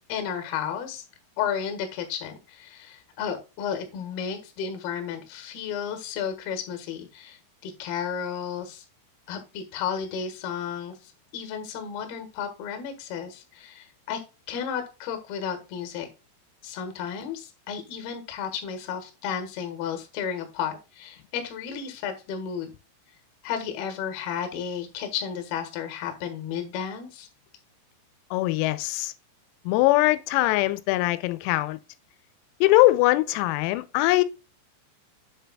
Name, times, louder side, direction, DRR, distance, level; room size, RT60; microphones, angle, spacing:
voice 1, 0.1-1.0 1.4-8.8 9.3-14.2 14.5-16.1 16.6-22.7 23.4-27.3, left 7 dB, 65° left, 2.8 m, -33 dB
voice 2, 28.3-29.1 29.7-31.8 32.6-34.2, left 18 dB, 90° left, 3.3 m, -21 dB
7.9 x 6.8 x 2.3 m
omnidirectional pair, 6.0 m